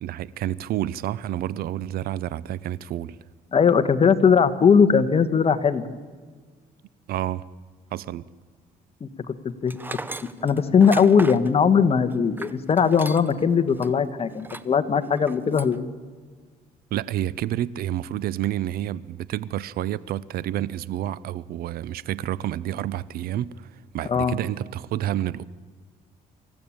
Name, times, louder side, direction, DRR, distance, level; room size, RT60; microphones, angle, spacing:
voice 1, 0.0-3.2 7.1-7.4 7.9-8.2 16.9-25.4, right 12 dB, 75° right, 0.7 m, -29 dB
voice 2, 3.5-5.8 9.0-10.0 10.4-15.9 24.1-24.3, left 6 dB, 40° left, 1.5 m, -20 dB
Tools, 9.7-13.4 13.8-13.9 14.4-14.8 15.1-15.8, right 2 dB, 10° right, 0.9 m, -37 dB
26.0 x 15.0 x 8.8 m
cardioid pair, 100°, 16 cm